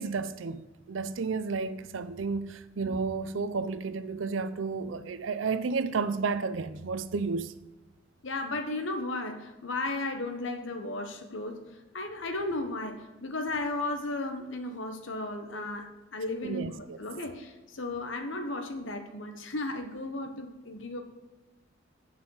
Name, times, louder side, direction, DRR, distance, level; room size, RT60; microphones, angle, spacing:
voice 1, 0.0-7.5 16.4-17.0, right 4 dB, 90° right, 0.5 m, -32 dB
voice 2, 8.2-11.6 11.9-21.0, left 2 dB, 80° left, 1.1 m, -35 dB
8.8 x 5.5 x 4.8 m
head